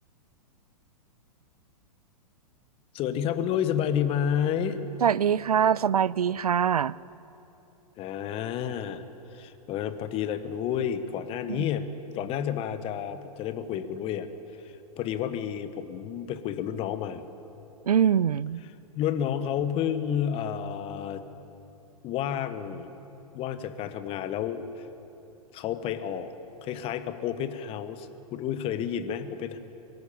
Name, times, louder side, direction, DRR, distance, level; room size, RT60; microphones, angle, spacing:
voice 1, 2.9-4.9 8.0-9.0 9.3-14.3 14.6-17.2 18.9-21.2 22.0-22.9 23.3-24.9 25.5-26.3 26.6-29.6, left 9 dB, 30° left, 11 dB, 1.2 m, -30 dB
voice 2, 5.0-6.9 11.5-11.6 17.9-18.6, right 8 dB, 75° right, 22 dB, 0.4 m, -23 dB
23.5 x 13.0 x 8.7 m, 3.0 s
figure-of-eight pair, 110°, 19 cm